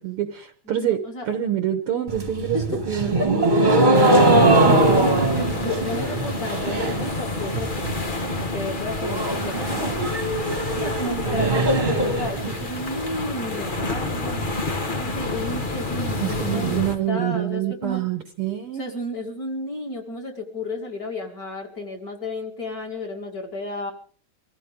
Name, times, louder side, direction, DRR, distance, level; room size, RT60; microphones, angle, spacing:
voice 1, 0.0-1.0 1.3-3.9 16.2-18.8, right 11 dB, 60° right, 7 dB, 1.7 m, -26 dB
voice 2, 0.7-1.3 2.5-2.8 4.6-10.0 10.7-18.0 18.7-23.9, left 2 dB, 35° left, 1 dB, 2.3 m, -33 dB
sound 1, 2.1-7.1 7.4-7.9 8.2-8.3 8.6-8.7 9.0-13.0, right 2 dB, 20° right, 1.4 m, -21 dB
sound 2, 3.9-17.0, left 2 dB, 60° left, 0.5 m, -29 dB
23.5 x 15.0 x 3.6 m, 0.42 s
omnidirectional pair, 3.3 m